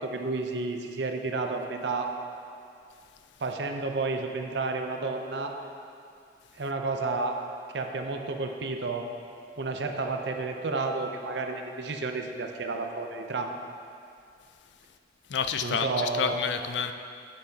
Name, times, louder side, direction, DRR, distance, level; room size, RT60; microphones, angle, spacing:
voice 1, 0.0-2.1 3.4-5.5 6.6-7.4 7.7-9.1 9.6-13.5 15.6-16.4, right 3 dB, 70° right, 4 dB, 0.7 m, -31 dB
voice 2, 15.3-16.9, left 6 dB, 75° left, 8 dB, 0.4 m, -29 dB
10.5 x 7.3 x 2.8 m, 2.5 s
head